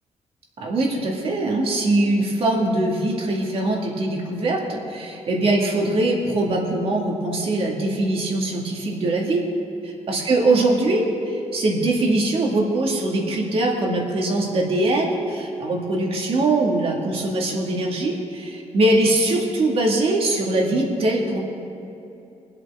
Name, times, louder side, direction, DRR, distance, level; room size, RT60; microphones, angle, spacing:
voice 1, 0.6-9.4 10.1-21.4, right 2 dB, 50° right, -1 dB, 2.2 m, -22 dB
23.0 x 8.0 x 3.7 m, 2.8 s
cardioid pair, 140°, 12 cm